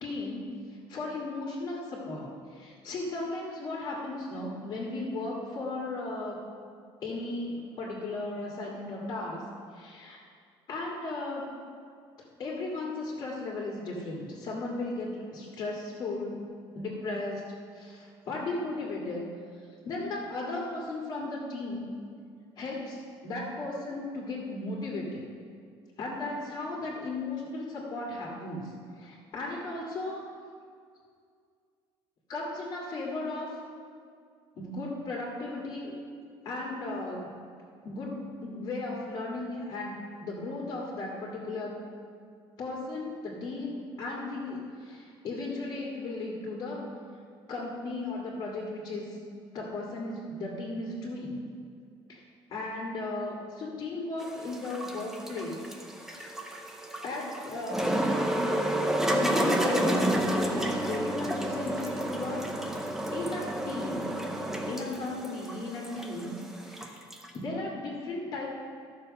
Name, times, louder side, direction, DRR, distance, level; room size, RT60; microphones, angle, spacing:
voice 1, 0.0-0.5 0.9-6.4 7.0-9.4 9.7-10.2 10.7-11.5 12.4-16.5 16.8-19.3 19.8-21.9 22.6-25.2 26.0-30.2 32.3-33.6 34.6-35.9 36.4-37.3 37.8-38.1 38.4-41.8 42.6-46.8 47.5-49.2 49.5-51.4 52.1-52.2 52.5-55.6 55.9-56.3 57.0-57.9 59.0-62.5 63.1-64.2 64.7-67.0 67.3-68.5, left 2 dB, 45° left, -4 dB, 2.1 m, -36 dB
sound 1, 54.2-67.3, right 1 dB, 5° right, 0.7 m, -30 dB
13.5 x 6.8 x 5.4 m, 2.2 s
cardioid pair, 170°, 10 cm